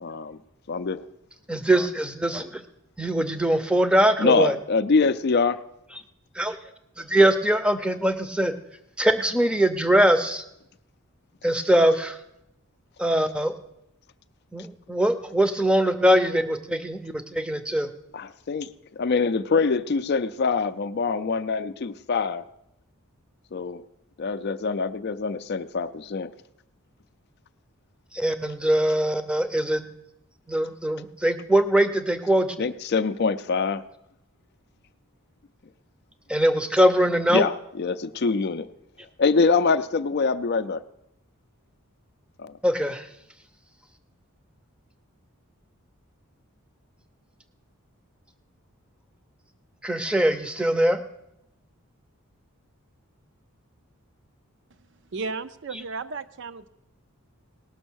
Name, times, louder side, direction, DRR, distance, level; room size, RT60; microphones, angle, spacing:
voice 1, 0.0-0.4 0.7-1.0 4.2-5.6 18.1-22.4 23.5-23.8 24.2-26.3 32.6-33.8 37.3-38.7 39.2-40.8 42.4-42.6, left 4 dB, 50° left, 12 dB, 0.4 m, -24 dB
voice 2, 1.5-2.6 3.0-4.6 6.3-6.6 7.0-8.5 9.0-10.4 11.4-12.2 13.0-13.5 14.5-17.9 28.1-29.9 30.5-32.7 36.3-37.5 42.6-43.1 49.8-51.0, right 1 dB, 5° right, 10 dB, 0.6 m, -22 dB
voice 3, 55.1-56.7, right 4 dB, 55° right, 12 dB, 0.5 m, -34 dB
18.5 x 6.3 x 6.3 m, 0.82 s
head